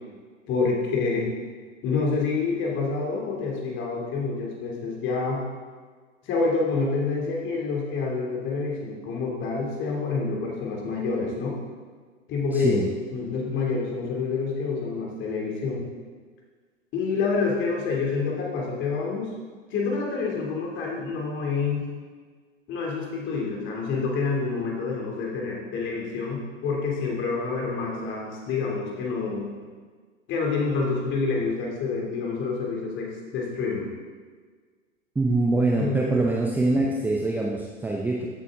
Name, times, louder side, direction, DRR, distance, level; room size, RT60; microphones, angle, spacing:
voice 1, 0.5-1.3 1.8-5.4 6.2-11.6 12.3-12.9 13.1-15.9 16.9-19.3 19.7-21.9 22.7-29.5 30.3-33.9 35.8-36.3, left 4 dB, 30° left, -1 dB, 2.8 m, -27 dB
voice 2, 12.5-12.9 35.2-38.3, right 2 dB, 5° right, -1 dB, 0.7 m, -24 dB
14.5 x 8.2 x 3.8 m, 1.5 s
figure-of-eight pair, 110°, 39 cm